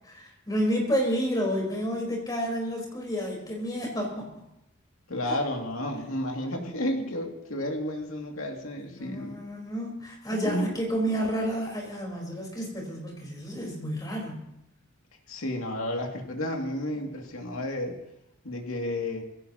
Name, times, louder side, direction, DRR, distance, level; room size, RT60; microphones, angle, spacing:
voice 1, 0.1-4.4 8.8-14.5, equal, 20° left, -1 dB, 4.3 m, -30 dB
voice 2, 5.1-9.4 10.4-10.7 15.3-17.9 18.4-19.2, left 1 dB, 85° left, 1 dB, 2.5 m, -31 dB
22.0 x 16.5 x 3.0 m, 0.85 s
head